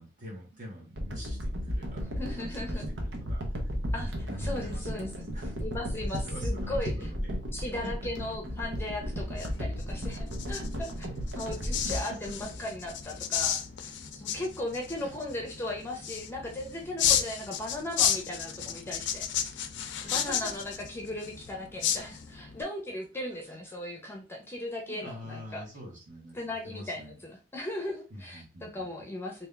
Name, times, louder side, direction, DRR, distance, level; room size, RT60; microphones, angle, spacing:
voice 1, 0.0-3.7 4.2-5.6 6.0-7.7 11.4-11.7 15.0-15.1 19.9-20.4 24.9-27.2 28.1-29.1, equal, 45° right, -3 dB, 1.7 m, -46 dB
sound 1, 1.0-13.2 13.7-13.8, equal, 80° right, 0.9 m, -34 dB
voice 2, 2.2-2.9 3.9-4.1 4.4-5.1 5.6-7.1 7.5-11.1 11.3-19.7 20.0-25.6 26.3-29.5, left 1 dB, 15° left, 0 dB, 0.7 m, -37 dB
sound 2, 9.0-22.6, left 9 dB, 80° left, 0.5 m, -33 dB
3.4 x 2.8 x 3.4 m, 0.33 s
head